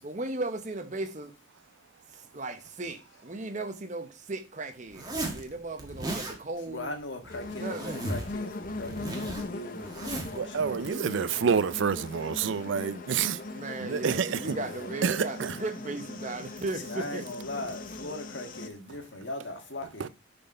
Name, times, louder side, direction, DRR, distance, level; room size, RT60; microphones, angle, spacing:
voice 1, 0.0-1.3 2.1-6.9 7.4-8.0 13.5-17.3, right 2 dB, 35° right, 0.8 m, -36 dB
Zipper (clothing), 4.9-5.4 5.8-6.4 7.2-8.4 8.6-10.4, right 1 dB, 20° right, 1.4 m, -36 dB
voice 2, 6.7-11.5 14.4-14.9 16.9-20.1, left 2 dB, 65° left, 1.6 m, -40 dB
sound 1, 7.3-18.7, left 2 dB, 45° left, 0.7 m, -40 dB
voice 3, 10.3-13.4 13.8-14.4 15.0-15.5 20.0-20.1, right 6 dB, 70° right, 0.4 m, -28 dB
6.7 x 4.3 x 5.5 m
head